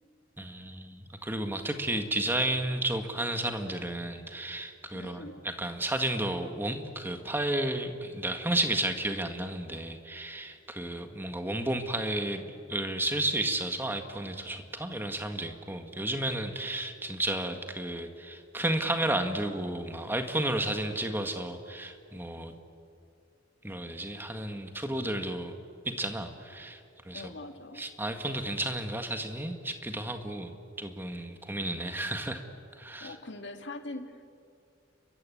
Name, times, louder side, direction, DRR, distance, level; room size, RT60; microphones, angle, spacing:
voice 1, 0.4-22.5 23.6-25.5 25.9-26.8 27.1-27.3 27.8-30.5 30.8-32.4 32.8-33.1, right 1 dB, 10° right, 6 dB, 1.8 m, -32 dB
voice 2, 4.9-5.4 27.1-27.9 33.0-34.3, left 2 dB, 65° left, 6 dB, 2.0 m, -42 dB
30.0 x 23.0 x 8.6 m, 2.4 s
head